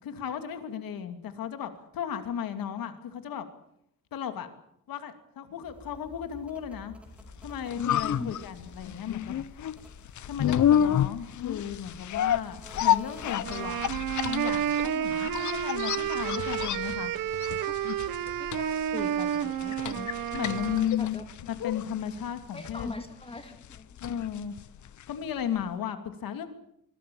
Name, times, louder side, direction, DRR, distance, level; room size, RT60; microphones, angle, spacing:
voice 1, 0.0-3.5 4.1-4.5 4.9-6.9 7.4-9.4 10.3-17.1 20.3-21.2 21.4-22.9 24.0-24.5 25.1-26.5, left 9 dB, 75° left, 8 dB, 2.7 m, -35 dB
sound 1, 5.6-14.0, equal, 5° right, 5.4 m, -51 dB
sound 2, 7.3-25.3 25.6-25.7, left 10 dB, 55° left, 0.8 m, -31 dB
voice 2, 8.0-8.4 14.9-15.1 17.7-17.8 18.2-20.1 21.0-21.3 22.5-23.9, left 2 dB, 15° left, 7 dB, 2.2 m, -41 dB
sound 3, 13.4-20.9, right 10 dB, 70° right, 1.3 m, -31 dB
24.5 x 21.5 x 7.2 m, 0.74 s
cardioid pair, 130°, 35 cm